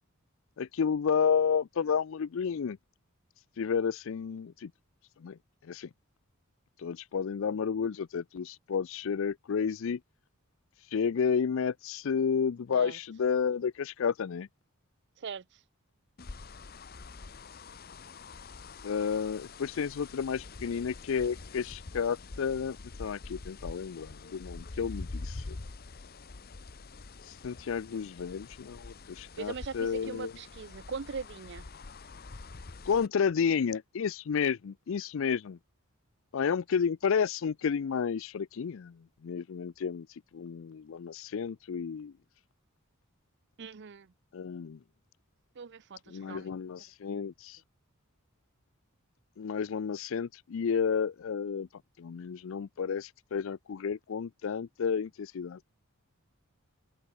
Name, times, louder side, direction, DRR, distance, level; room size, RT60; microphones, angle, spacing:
voice 1, 0.6-2.8 3.6-4.7 5.2-5.9 6.8-10.0 10.9-14.5 18.8-25.6 27.4-30.3 32.9-35.6 36.3-40.1 40.3-42.1 44.3-44.8 46.1-47.6 49.4-51.7 52.0-55.7, left 6 dB, 60° left, 0.4 m, -31 dB
sound 1, 16.2-33.1, left 3 dB, 45° left, 0.8 m, -45 dB
voice 2, 29.4-31.6 43.6-44.1 45.6-46.5, right 5 dB, 55° right, 0.5 m, -40 dB
open air
head